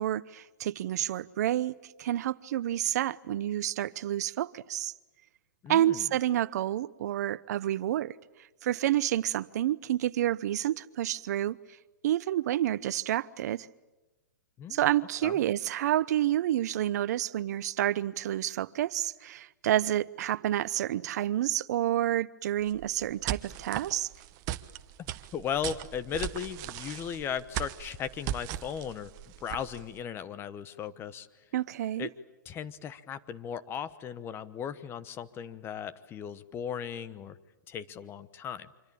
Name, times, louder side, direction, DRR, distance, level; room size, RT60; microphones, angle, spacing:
voice 1, 0.0-1.7 2.0-4.9 5.7-8.1 8.6-11.6 12.0-13.7 14.7-24.1 31.5-32.1, right 12 dB, 60° right, 0.9 m, -29 dB
voice 2, 5.6-6.1 14.6-14.8 15.2-15.4 25.0-29.1 29.4-31.3 32.0-32.1 32.4-37.4 37.7-38.7, left 8 dB, 20° left, 1.1 m, -37 dB
sound 1, 22.6-30.0, right 13 dB, 35° right, 1.1 m, -38 dB
26.0 x 25.0 x 8.7 m
hypercardioid pair, 135°, 10 cm